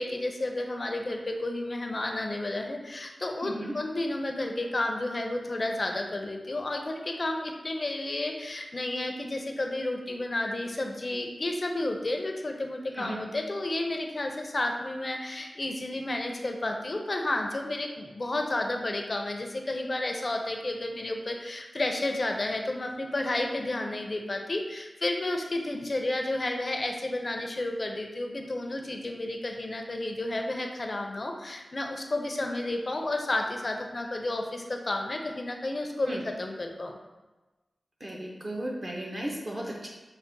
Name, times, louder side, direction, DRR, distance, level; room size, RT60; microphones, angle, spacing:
voice 1, 0.0-37.0, left 2 dB, 45° left, 3 dB, 0.4 m, -31 dB
voice 2, 3.4-3.7 12.9-13.2 36.1-36.2 38.0-39.9, right 1 dB, 35° right, -2 dB, 0.5 m, -35 dB
5.5 x 2.0 x 2.6 m, 1.2 s
wide cardioid pair, 85°, 0 cm